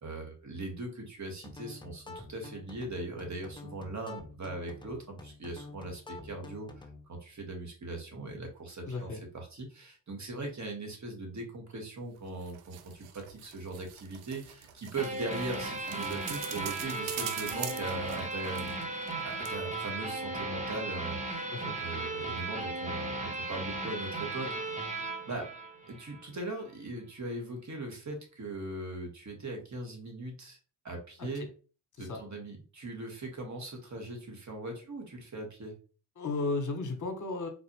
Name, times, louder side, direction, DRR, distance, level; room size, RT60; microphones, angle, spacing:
voice 1, 0.0-6.7 7.1-18.8 19.2-24.9 25.3-25.5 25.9-30.6 30.8-31.5 32.0-35.7, right 2 dB, 35° right, 2 dB, 1.6 m, -40 dB
sound 1, 1.4-7.1, left 3 dB, 10° left, 0.6 m, -48 dB
voice 2, 8.9-9.2 21.5-21.8 32.0-32.2 36.2-37.5, left 3 dB, 40° left, 4 dB, 1.3 m, -34 dB
sound 2, 12.2-19.2 19.4-19.5, right 9 dB, 80° right, 0.6 m, -43 dB
sound 3, 15.0-26.2, right 2 dB, 15° right, 1.0 m, -36 dB
4.0 x 2.4 x 3.1 m, 0.37 s
hypercardioid pair, 50°, 48 cm